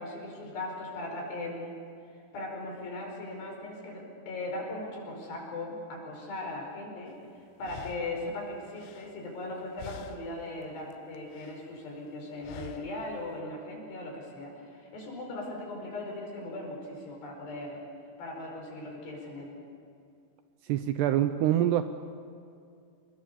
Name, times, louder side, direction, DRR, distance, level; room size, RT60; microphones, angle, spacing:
voice 1, 0.0-1.8 2.3-7.2 7.6-17.8 18.2-19.5, left 2 dB, 65° left, 0 dB, 7.1 m, -38 dB
sound 1, 7.1-7.2 7.6-9.5 9.8-10.5 10.8-11.7 12.4-13.1, left 10 dB, 85° left, 3.4 m, -48 dB
voice 2, 20.7-21.8, right 12 dB, 80° right, 9 dB, 2.5 m, -25 dB
27.5 x 22.0 x 7.1 m, 2.4 s
omnidirectional pair, 5.4 m